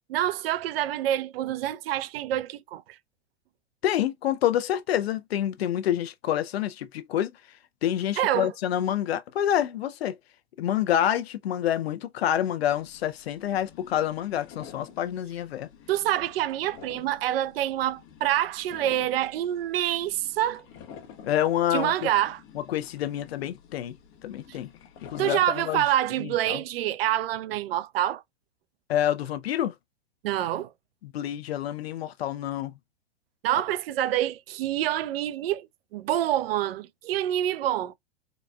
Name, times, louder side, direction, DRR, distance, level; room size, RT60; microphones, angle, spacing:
voice 1, 0.1-3.0 8.2-8.5 15.9-20.6 21.7-22.4 24.5-24.6 25.2-28.2 30.2-30.7 33.4-37.9, right 12 dB, 65° right, 0.5 m, -27 dB
voice 2, 3.8-7.3 7.8-10.2 10.6-15.7 21.2-22.1 22.5-24.0 24.2-24.7 25.0-25.8 26.2-26.6 28.9-29.7 31.0-32.7, left 11 dB, 70° left, 0.6 m, -27 dB
sound 1, 12.7-25.5, left 7 dB, 50° left, 0.9 m, -50 dB
4.0 x 2.3 x 2.2 m
hypercardioid pair, 105°, 32 cm